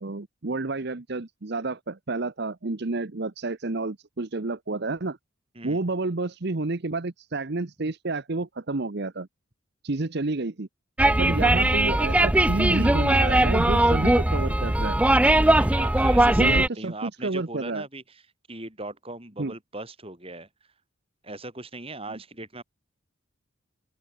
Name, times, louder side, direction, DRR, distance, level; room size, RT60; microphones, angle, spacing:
voice 1, 0.0-5.2 5.6-9.3 9.8-10.7 11.2-15.0 16.4-17.8 19.4-19.5, right 3 dB, 55° right, 0.9 m, -30 dB
sound 1, 11.0-16.7, right 1 dB, 5° right, 0.4 m, -20 dB
voice 2, 15.3-18.2 18.5-20.5 21.2-22.6, right 2 dB, 30° right, 7.9 m, -39 dB
open air
head